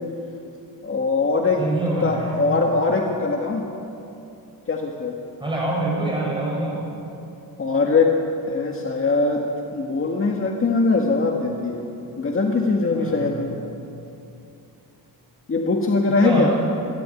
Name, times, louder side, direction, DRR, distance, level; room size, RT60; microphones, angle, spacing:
voice 1, 0.8-1.6 2.0-3.7 4.7-5.2 7.6-8.2 8.5-9.4 9.7-11.8 12.2-13.5 15.5-16.5, left 3 dB, 35° left, 1 dB, 1.9 m, -21 dB
voice 2, 1.5-2.3 5.4-6.8 12.9-13.4 16.1-16.6, right 2 dB, 15° right, -4 dB, 6.4 m, -25 dB
26.5 x 12.0 x 9.9 m, 2.7 s
cardioid pair, 130°, 37 cm